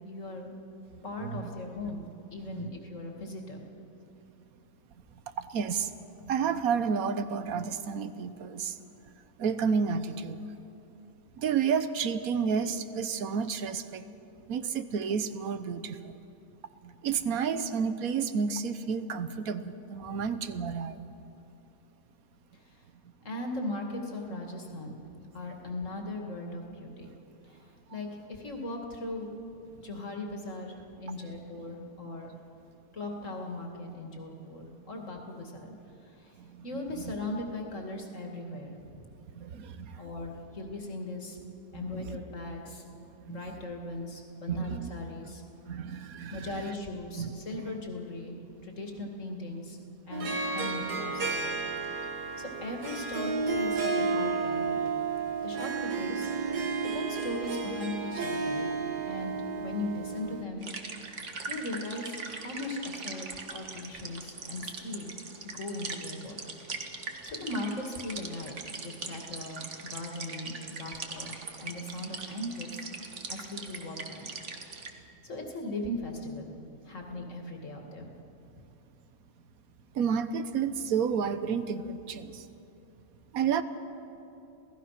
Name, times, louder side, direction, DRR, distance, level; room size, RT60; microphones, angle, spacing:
voice 1, 0.1-0.5 1.0-3.6 20.1-20.2 22.7-22.8 23.2-27.1 27.4-29.3 29.7-32.3 32.9-35.8 36.1-36.3 36.6-39.1 40.0-41.4 41.7-42.8 43.3-45.4 46.3-49.8 50.0-51.6 52.4-54.9 55.4-56.3 56.9-58.7 59.1-60.7 61.5-65.2 65.4-66.4 66.9-68.5 68.8-72.8 73.3-74.3 74.8-74.9 75.2-76.5 76.8-78.1, left 2 dB, 50° left, 2 dB, 2.6 m, -38 dB
voice 2, 5.4-5.9 6.2-8.8 9.4-10.4 11.4-14.0 14.5-16.2 16.8-21.1 36.4-36.7 37.0-37.1 39.3-40.0 41.7-42.0 43.2-43.4 44.5-44.9 45.7-46.7 47.2-47.3 79.9-82.5 83.3-83.6, right 6 dB, 70° right, 12 dB, 1.3 m, -31 dB
Harp, 50.1-60.4, right 4 dB, 85° right, 2.1 m, -32 dB
sound 1, 60.6-74.9, right 4 dB, 50° right, 1.7 m, -41 dB
27.5 x 17.5 x 5.9 m, 2.8 s
omnidirectional pair, 1.7 m